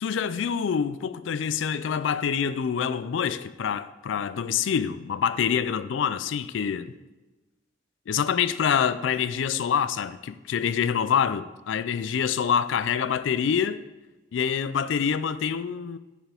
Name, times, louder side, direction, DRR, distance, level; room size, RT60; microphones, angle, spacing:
voice 1, 0.0-6.9 8.1-13.8 14.3-16.0, left 7 dB, 80° left, 0.4 m, -26 dB
11.0 x 4.9 x 3.5 m
head